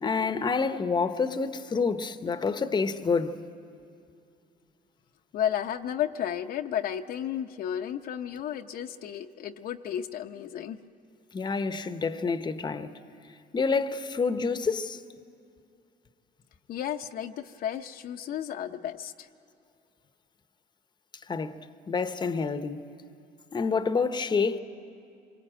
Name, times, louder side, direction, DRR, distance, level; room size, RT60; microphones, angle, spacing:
voice 1, 0.0-3.4 11.3-12.9 13.5-15.0 21.3-21.6 21.9-22.8 23.5-24.6, left 4 dB, 25° left, 0.8 m, -28 dB
voice 2, 5.3-10.8 16.7-19.3, left 10 dB, 60° left, 0.7 m, -33 dB
26.0 x 22.5 x 8.8 m
cardioid pair, 110°, 17 cm